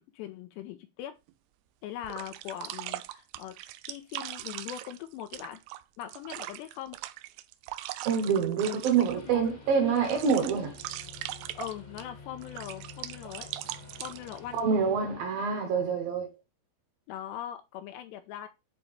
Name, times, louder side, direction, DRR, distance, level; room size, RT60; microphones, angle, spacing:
voice 1, 0.1-1.1 1.8-3.5 3.9-5.6 6.0-7.0 8.6-9.5 11.5-13.5 14.0-14.6 17.1-18.5, left 11 dB, 80° left, 2.7 m, -41 dB
sound 1, 1.3-1.4 2.0-9.3 9.7-12.0 12.4-14.6, right 15 dB, 85° right, 2.4 m, -40 dB
voice 2, 8.0-10.8 14.5-16.4, right 6 dB, 65° right, 2.4 m, -26 dB
sound 2, 9.1-15.2, left 4 dB, 40° left, 1.1 m, -49 dB
10.5 x 4.2 x 3.3 m
omnidirectional pair, 5.4 m